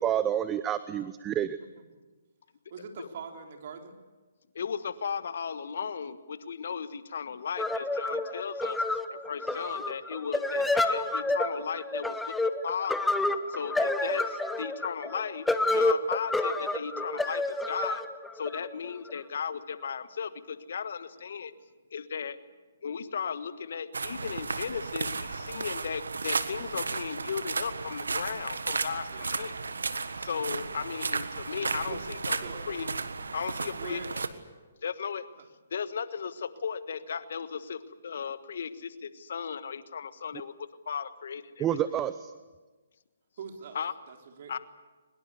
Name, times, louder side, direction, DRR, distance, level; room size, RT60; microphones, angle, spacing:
voice 1, 0.0-1.6 41.6-42.3, right 10 dB, 20° right, 13 dB, 0.8 m, -28 dB
voice 2, 2.7-4.0 9.5-9.9 29.1-29.3 30.3-30.5 31.8-32.0 32.3-32.6 33.7-34.1 43.4-43.8 44.1-44.6, right 6 dB, 50° right, 3 dB, 3.7 m, -43 dB
voice 3, 4.5-8.8 9.3-10.6 10.9-13.1 13.5-18.0 18.3-21.5 21.9-22.4 22.8-29.5 30.2-32.9 33.3-34.0 34.8-35.3 35.7-40.5 40.9-41.7 43.7-43.9 44.5-44.6, left 6 dB, 60° left, 13 dB, 1.4 m, -36 dB
sound 1, 7.6-19.2, left 2 dB, 5° left, 1.1 m, -29 dB
sound 2, 23.9-34.3, right 4 dB, 80° right, 1.5 m, -34 dB
23.5 x 21.5 x 8.3 m, 1.3 s
figure-of-eight pair, 135°, 0 cm